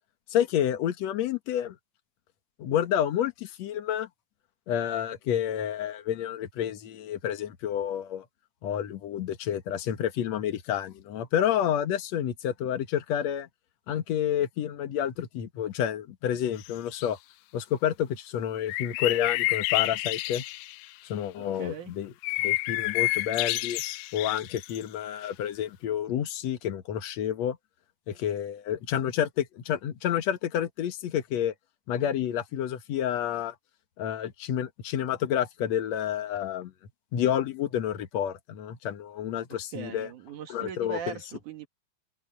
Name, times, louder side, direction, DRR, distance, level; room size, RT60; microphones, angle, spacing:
voice 1, 0.3-1.8 2.6-4.1 4.7-8.3 8.6-13.5 13.9-17.2 17.5-20.4 21.1-22.1 22.4-23.8 24.1-27.6 28.1-31.5 31.9-33.5 34.0-36.7 37.1-40.1 40.5-41.2, left 10 dB, 60° left, 2.0 m, -29 dB
sound 1, 16.6-17.1 18.7-20.9 22.2-24.8, left 21 dB, 80° left, 2.4 m, -29 dB
voice 2, 21.6-21.9 39.5-41.7, right 8 dB, 60° right, 2.9 m, -40 dB
open air
omnidirectional pair, 4.5 m